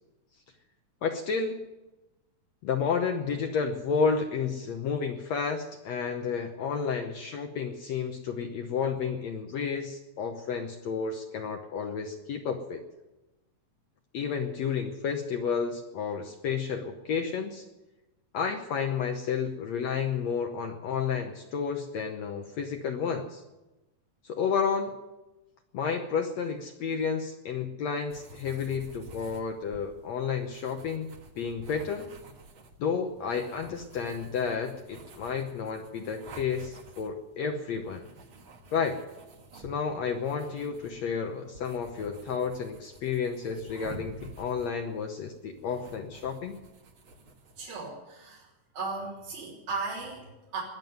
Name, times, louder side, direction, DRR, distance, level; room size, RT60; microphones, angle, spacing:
voice 1, 1.0-1.6 2.6-12.8 14.1-17.7 18.3-23.4 24.2-24.9 25.7-31.1 31.4-32.1 32.8-38.1 38.7-39.0 39.5-46.6, left 6 dB, 70° left, 4 dB, 1.7 m, -31 dB
sound 1, 28.1-47.7, right 1 dB, 50° right, 1.7 m, -50 dB
voice 2, 47.6-48.5 48.7-50.6, right 4 dB, 80° right, -6 dB, 5.0 m, -36 dB
20.5 x 7.5 x 9.3 m, 1.0 s
omnidirectional pair, 4.0 m